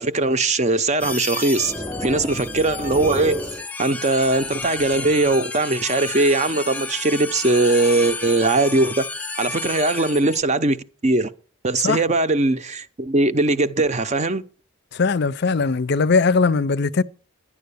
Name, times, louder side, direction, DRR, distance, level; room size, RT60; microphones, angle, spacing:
voice 1, 0.0-1.7 2.0-3.4 3.8-9.0 9.4-10.8 11.0-11.3 11.6-14.4, right 2 dB, 30° right, 0.6 m, -20 dB
sound 1, 1.0-10.4, left 3 dB, 5° left, 0.6 m, -31 dB
voice 2, 14.9-17.0, left 4 dB, 50° left, 0.5 m, -19 dB
11.0 x 10.5 x 6.8 m
head